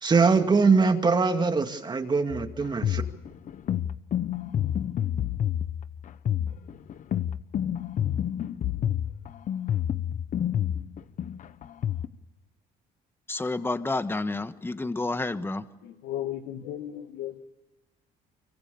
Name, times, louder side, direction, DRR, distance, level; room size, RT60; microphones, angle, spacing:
voice 1, 0.0-3.0, right 4 dB, 25° right, 6 dB, 2.3 m, -22 dB
sound 1, 2.3-12.1, left 10 dB, 50° left, 1.0 m, -29 dB
voice 2, 13.3-15.7, left 2 dB, 15° left, 11 dB, 1.3 m, -30 dB
voice 3, 15.8-17.4, left 12 dB, 90° left, 9 dB, 1.8 m, -35 dB
25.0 x 23.5 x 7.0 m, 1.0 s
cardioid pair, 110°, 17 cm